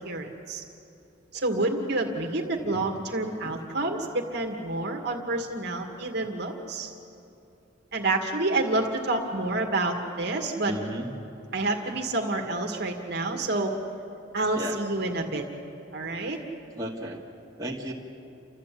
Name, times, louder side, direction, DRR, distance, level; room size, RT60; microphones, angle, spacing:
voice 1, 0.1-0.6 1.3-6.9 7.9-10.7 11.5-13.7 14.3-15.4 15.9-16.4, right 2 dB, 60° right, 1 dB, 2.1 m, -28 dB
voice 2, 10.7-11.2 14.6-14.8 16.8-17.2 17.6-17.9, right 1 dB, 20° right, -3 dB, 2.1 m, -34 dB
29.5 x 13.5 x 8.6 m, 2.8 s
head